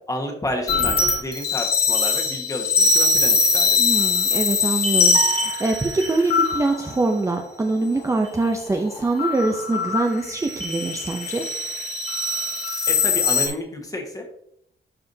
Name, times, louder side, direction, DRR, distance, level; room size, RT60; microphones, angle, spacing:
voice 1, 0.1-3.8 12.9-14.3, left 1 dB, 20° left, 1 dB, 1.3 m, -30 dB
sound 1, 0.7-7.1 7.9-8.4 8.7-13.5, left 4 dB, 55° left, 1.9 m, -22 dB
voice 2, 3.8-11.4, right 2 dB, 15° right, 3 dB, 0.5 m, -24 dB
sound 2, 5.1-6.2, right 11 dB, 60° right, 0.7 m, -31 dB
12.0 x 4.8 x 2.7 m, 0.71 s
wide cardioid pair, 170°, 19 cm